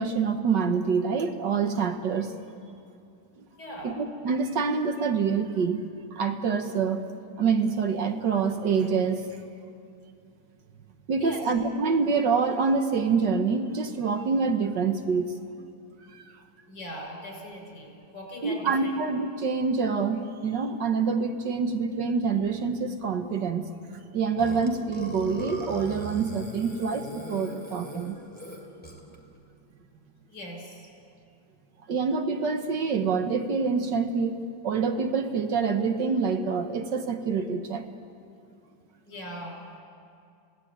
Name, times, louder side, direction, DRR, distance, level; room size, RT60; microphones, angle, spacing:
voice 1, 0.0-2.3 3.8-5.8 6.1-7.0 7.4-9.3 11.1-15.3 16.1-16.2 18.4-23.7 24.1-28.2 31.9-37.8, right 5 dB, 65° right, 6 dB, 1.8 m, -26 dB
voice 2, 3.6-4.0 11.2-11.5 16.7-18.9 30.3-30.8 39.1-39.6, equal, 65° left, 1 dB, 6.3 m, -40 dB
Burping eructation, 24.4-29.2, equal, 5° left, 3.3 m, -39 dB
28.0 x 17.0 x 8.9 m, 2.5 s
omnidirectional pair, 2.1 m